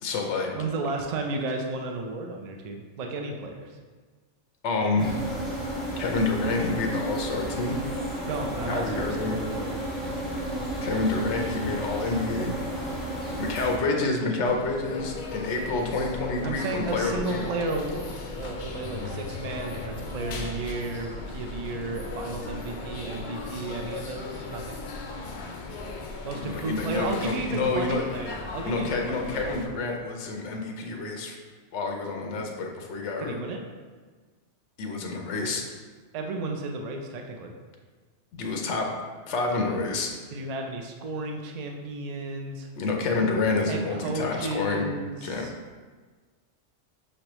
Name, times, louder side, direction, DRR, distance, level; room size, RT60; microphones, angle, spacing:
voice 1, 0.0-0.5 4.6-5.1 6.0-7.8 8.7-9.4 10.8-12.6 13.4-17.4 26.3-28.0 28.6-31.4 31.7-33.4 34.8-35.6 38.3-38.9 39.3-40.1 42.8-44.9 45.2-45.5, left 3 dB, 75° left, 2 dB, 0.9 m, -28 dB
voice 2, 0.5-3.7 8.3-10.4 16.4-24.8 26.2-29.5 33.2-33.6 36.1-37.5 40.3-42.7 43.6-45.5, right 3 dB, 80° right, 3 dB, 0.3 m, -33 dB
sound 1, 5.0-13.8, right 1 dB, ahead, 1.2 m, -32 dB
sound 2, 14.4-29.7, left 3 dB, 55° left, 0.5 m, -37 dB
5.7 x 3.2 x 3.0 m, 1.4 s
omnidirectional pair, 1.2 m